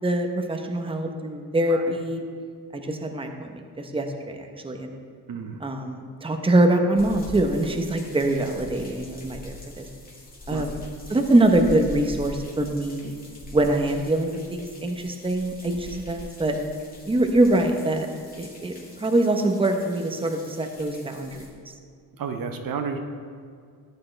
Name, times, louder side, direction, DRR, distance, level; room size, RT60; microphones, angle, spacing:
voice 1, 0.0-2.2 2.7-5.0 5.6-9.9 10.5-10.8 11.1-13.2 13.5-16.6 17.1-18.1 18.4-21.7, right 1 dB, 15° right, 4 dB, 0.9 m, -24 dB
voice 2, 5.3-5.6 10.5-10.6 22.2-23.0, right 6 dB, 60° right, 5 dB, 0.9 m, -31 dB
sound 1, 7.0-21.5, left 1 dB, 20° left, 2.2 m, -43 dB
13.0 x 8.6 x 3.3 m, 2.2 s
cardioid pair, 85°, 39 cm